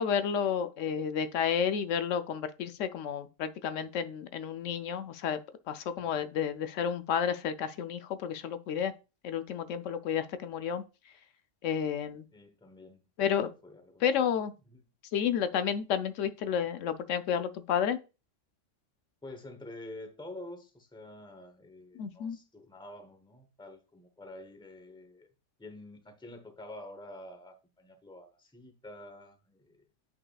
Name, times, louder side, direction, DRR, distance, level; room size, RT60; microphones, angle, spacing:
voice 1, 0.0-5.4 5.7-8.9 9.2-10.8 11.6-12.3 13.2-13.5 14.0-14.5 15.1-18.0 22.0-22.4, left 8 dB, 80° left, 0.9 m, -31 dB
voice 2, 12.3-14.0 19.2-25.3 25.6-29.8, left 1 dB, 5° left, 0.8 m, -48 dB
8.1 x 5.7 x 2.3 m
omnidirectional pair, 1.3 m